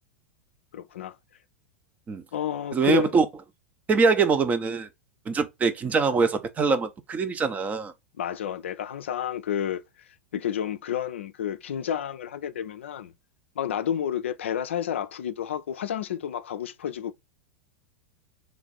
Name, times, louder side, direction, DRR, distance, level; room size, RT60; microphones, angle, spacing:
voice 1, 0.7-1.2 2.3-3.1 8.2-9.8 10.3-13.1 13.6-17.1, left 9 dB, 65° left, 0.3 m, -30 dB
voice 2, 2.7-3.3 3.9-4.9 5.3-7.9, right 4 dB, 20° right, 0.5 m, -23 dB
3.2 x 2.4 x 3.9 m
figure-of-eight pair, 90°, 7 cm